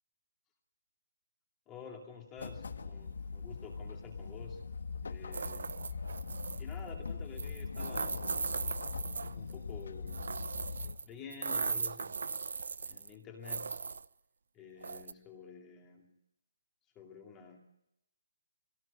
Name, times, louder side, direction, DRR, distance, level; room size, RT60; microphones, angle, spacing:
voice 1, 1.7-4.7 5.0-5.8 6.6-8.3 9.3-10.3 11.0-12.3 12.8-13.8 14.5-16.1 16.9-17.6, left 6 dB, 10° left, 1 dB, 2.4 m, -50 dB
sound 1, 2.4-11.0, left 5 dB, 70° left, 1.6 m, -41 dB
sound 2, 5.3-6.7 7.4-9.5 10.1-11.0 11.3-13.1 13.4-14.0 14.8-15.1, right 5 dB, 70° right, 0.8 m, -38 dB
22.0 x 17.5 x 9.8 m, 0.82 s
hypercardioid pair, 180°, 0 cm